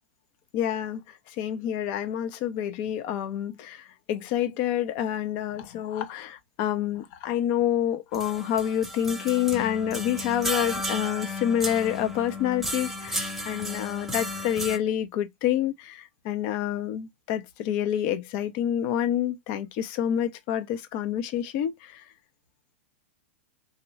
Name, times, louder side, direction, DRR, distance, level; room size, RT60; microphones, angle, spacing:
voice 1, 0.5-22.0, left 10 dB, 50° left, 0.8 m, -28 dB
sound 1, 8.1-14.8, left 1 dB, 5° right, 0.9 m, -33 dB
2.9 x 2.9 x 2.4 m
hypercardioid pair, 110°, 6 cm